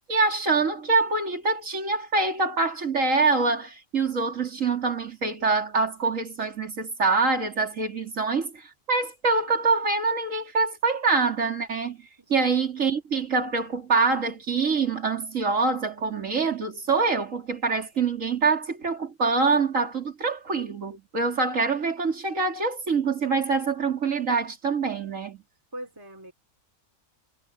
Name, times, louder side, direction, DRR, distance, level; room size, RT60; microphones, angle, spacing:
voice 1, 0.1-25.4, right 4 dB, 75° right, 3.1 m, -25 dB
voice 2, 12.2-12.5 25.7-26.3, right 1 dB, 15° right, 2.6 m, -41 dB
omnidirectional pair, 1.4 m